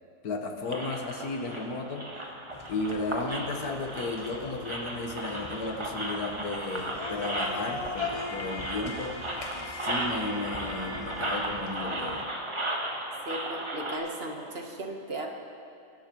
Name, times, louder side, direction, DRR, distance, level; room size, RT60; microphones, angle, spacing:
voice 1, 0.2-2.1 2.7-9.2 9.5-12.3, left 3 dB, 65° left, 3 dB, 1.6 m, -34 dB
sound 1, 0.7-14.0, right 1 dB, 20° right, 1.1 m, -35 dB
sound 2, 2.5-12.2, left 3 dB, 30° left, 0.7 m, -41 dB
voice 2, 13.3-15.3, right 1 dB, 40° right, 1 dB, 1.3 m, -36 dB
23.5 x 11.5 x 3.0 m, 2.6 s
omnidirectional pair, 1.8 m